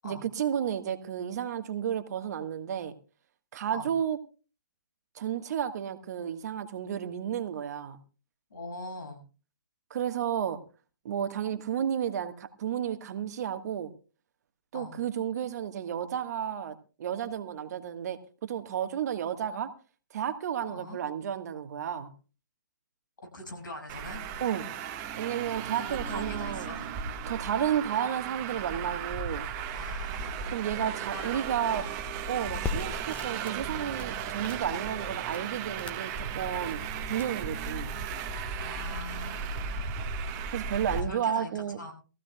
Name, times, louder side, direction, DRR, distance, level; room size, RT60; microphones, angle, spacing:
voice 1, 0.0-2.9 3.5-4.2 5.1-8.0 9.9-10.6 11.0-13.9 14.7-19.7 20.1-22.1 24.4-24.7 25.2-26.7 27.3-29.4 30.5-31.8 32.3-36.8 37.1-37.9 40.5-41.8, right 9 dB, 55° right, 1.4 m, -32 dB
voice 2, 8.5-9.2 14.7-15.0 20.7-21.0 23.3-24.2 25.7-26.9 27.6-27.8 29.7-30.6 31.0-32.2 38.5-39.9 41.0-41.9, left 1 dB, 80° left, 6.7 m, -43 dB
Traffic noise roadway noise, 23.9-41.0, right 6 dB, 35° right, 1.4 m, -36 dB
sound 1, 32.4-37.9, left 4 dB, 15° left, 1.4 m, -41 dB
21.5 x 15.0 x 2.3 m
hypercardioid pair, 130°, 10 cm